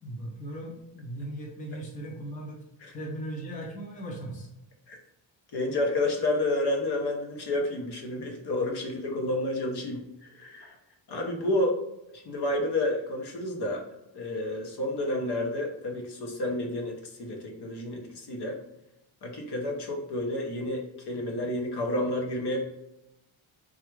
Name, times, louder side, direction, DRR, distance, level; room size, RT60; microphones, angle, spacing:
voice 1, 0.0-2.6 2.9-4.5, right 1 dB, 15° left, -1 dB, 0.5 m, -38 dB
voice 2, 5.5-10.8 11.1-11.8 12.1-13.8 14.1-18.6 19.2-22.6, left 1 dB, 55° left, 1 dB, 0.8 m, -30 dB
3.3 x 2.3 x 3.1 m, 0.87 s
wide cardioid pair, 170°, 50 cm